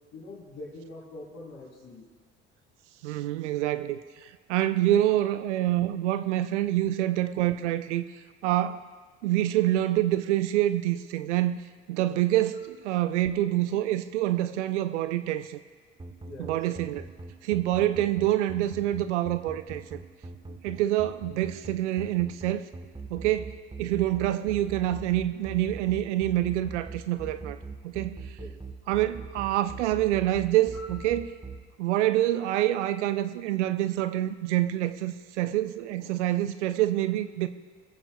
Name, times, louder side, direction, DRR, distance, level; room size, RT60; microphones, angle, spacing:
voice 1, 0.1-2.1 16.2-16.6 28.4-28.6, left 2 dB, 50° left, -4 dB, 4.0 m, -44 dB
voice 2, 3.0-8.0 8.4-8.8 9.2-11.6 11.9-15.6 16.4-17.0 17.4-20.0 20.6-22.6 23.1-27.6 27.8-28.2 28.9-31.2 31.8-37.5, right 14 dB, 75° right, 12 dB, 0.6 m, -26 dB
sound 1, 16.0-31.5, right 4 dB, 15° right, 1.2 m, -40 dB
26.0 x 15.0 x 2.3 m, 1.5 s
hypercardioid pair, 60°, 35 cm